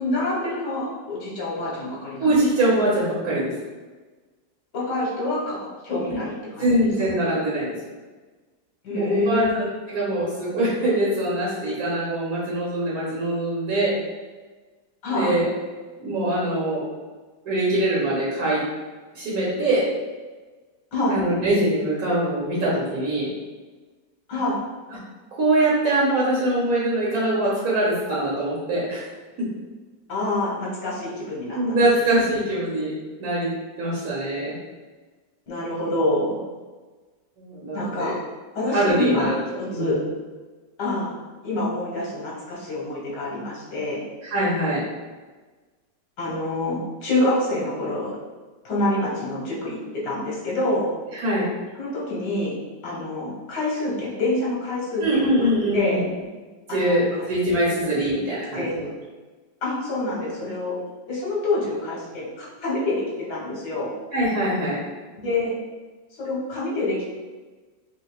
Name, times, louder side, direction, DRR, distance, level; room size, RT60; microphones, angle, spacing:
voice 1, 0.0-2.3 4.7-6.7 8.8-9.5 9.9-10.1 15.0-15.4 20.9-21.2 24.3-24.6 30.1-31.8 32.1-32.3 35.5-36.4 37.7-38.2 38.5-39.3 39.6-40.0 40.8-41.2 41.4-44.0 46.2-48.1 48.6-50.9 51.8-52.5 52.8-55.3 55.7-56.0 56.7-57.3 58.5-58.7 59.6-60.8 61.1-63.9 65.2-65.6 66.2-67.1, left 2 dB, 65° left, -5 dB, 1.8 m, -26 dB
voice 2, 2.2-3.5 6.1-6.2 6.6-7.7 8.9-14.0 15.1-15.5 16.0-16.8 17.4-18.6 19.1-19.9 21.1-23.3 25.4-29.0 31.5-32.9 33.2-33.5 33.8-34.5 37.4-38.1 38.7-39.4 39.7-40.0 44.2-44.8 51.1-51.5 55.0-56.0 56.7-58.9 64.1-64.8, right 1 dB, 55° right, -7 dB, 1.3 m, -23 dB
5.6 x 3.0 x 2.3 m, 1.3 s
omnidirectional pair, 2.1 m